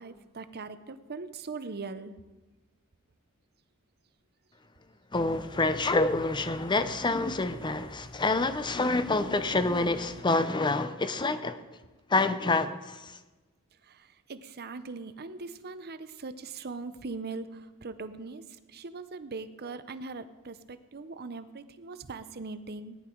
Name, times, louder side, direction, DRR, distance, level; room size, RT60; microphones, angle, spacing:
voice 1, 0.0-2.2 13.9-18.4 18.7-23.0, right 3 dB, 45° right, 0.7 m, -40 dB
Car / Idling, 5.1-10.2, right 1 dB, 40° left, 3.9 m, -50 dB
voice 2, 5.1-11.6 12.1-13.2, left 3 dB, 20° left, 0.7 m, -27 dB
18.0 x 10.5 x 4.6 m
head